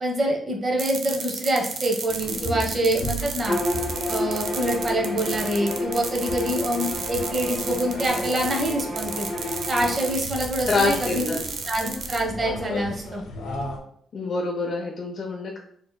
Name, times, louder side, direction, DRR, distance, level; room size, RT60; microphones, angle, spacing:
voice 1, 0.0-3.6 4.1-9.3 9.7-11.3 11.7-13.2, right 1 dB, 30° right, 1 dB, 0.7 m, -26 dB
sound 1, 0.8-12.2, right 5 dB, 70° right, 0.5 m, -33 dB
sound 2, 2.1-13.8, left 1 dB, 85° left, 0.7 m, -36 dB
Bowed string instrument, 3.4-10.1, left 1 dB, 50° right, 1.0 m, -31 dB
voice 2, 10.7-11.4 14.1-15.6, left 3 dB, 45° left, -1 dB, 0.4 m, -26 dB
4.2 x 2.7 x 2.2 m, 0.65 s
cardioid pair, 110°, 0 cm